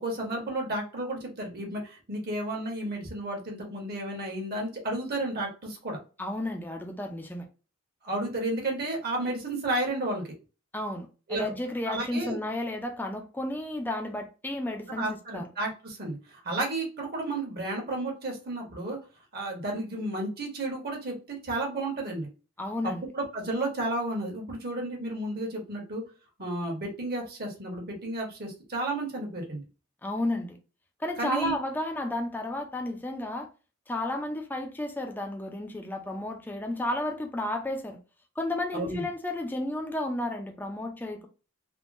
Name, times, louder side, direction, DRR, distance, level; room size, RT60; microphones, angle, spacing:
voice 1, 0.0-6.0 8.0-10.2 11.3-11.5 11.9-12.4 14.9-19.0 19.3-22.3 22.8-26.0 26.4-29.6 31.2-31.5 38.7-39.1, right 2 dB, 50° right, 1.1 m, -32 dB
voice 2, 6.2-7.5 10.7-15.5 22.6-23.0 30.0-30.6 31.0-33.5 33.9-38.0 38.4-41.3, left 1 dB, 10° left, 0.4 m, -32 dB
3.5 x 2.2 x 2.5 m
head